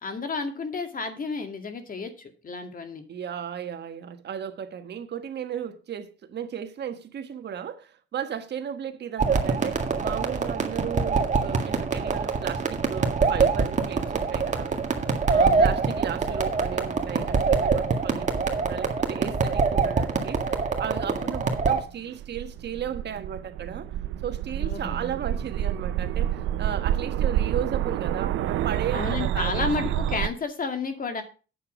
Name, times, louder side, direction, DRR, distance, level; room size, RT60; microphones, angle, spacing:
voice 1, 0.0-3.0 15.4-15.7 21.1-21.4 24.6-25.0 28.9-31.2, left 4 dB, 45° left, 2.2 m, -32 dB
voice 2, 3.1-14.7 15.3-23.9 24.2-30.0, right 8 dB, 60° right, 1.4 m, -35 dB
sound 1, 9.2-21.8, right 4 dB, 35° right, 1.8 m, -25 dB
sound 2, 21.9-30.3, right 11 dB, 85° right, 0.6 m, -28 dB
8.5 x 6.8 x 6.0 m
cardioid pair, 90°, 20 cm